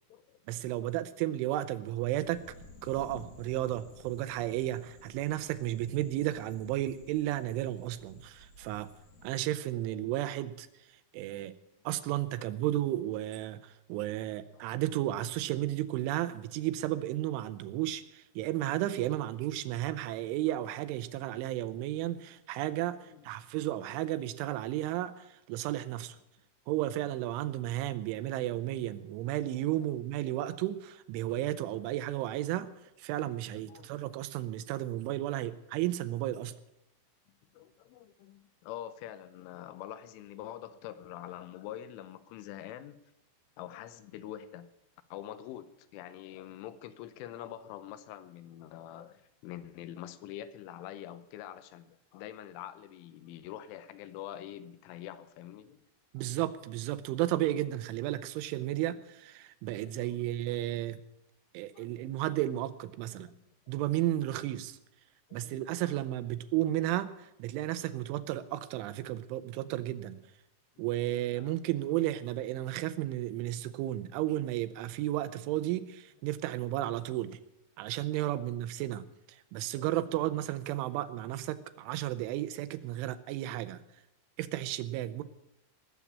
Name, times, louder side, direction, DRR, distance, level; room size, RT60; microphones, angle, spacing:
voice 1, 0.5-2.4 2.8-8.9 9.2-10.7 11.1-11.5 11.9-26.2 26.7-32.7 33.0-36.6 56.1-61.0 61.5-63.3 63.7-64.8 65.3-70.2 70.8-77.4 77.8-83.8 84.4-85.2, right 14 dB, 85° right, 12 dB, 3.2 m, -33 dB
sound 1, 2.2-9.3, left 2 dB, 50° left, 2.1 m, -54 dB
voice 2, 33.6-33.9 36.4-36.5 37.5-43.0 43.6-44.7 45.1-55.8 59.8-60.2 61.7-62.1 65.3-65.9 71.4-71.5 78.1-78.2, left 12 dB, 85° left, 12 dB, 3.4 m, -45 dB
19.0 x 7.2 x 8.4 m, 0.87 s
omnidirectional pair, 5.5 m